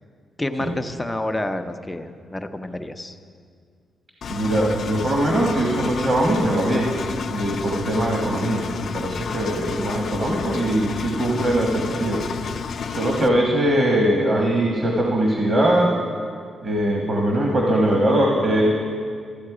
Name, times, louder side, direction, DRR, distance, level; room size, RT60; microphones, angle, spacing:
voice 1, 0.4-3.2, left 1 dB, 15° left, 6 dB, 0.6 m, -29 dB
Engine, 4.2-13.3, left 6 dB, 60° left, 0.5 m, -31 dB
voice 2, 4.3-6.9 7.3-12.2 12.9-15.9 16.6-18.7, right 1 dB, 40° right, -1 dB, 1.4 m, -21 dB
13.0 x 7.5 x 4.9 m, 2.1 s
cardioid pair, 95°, 0 cm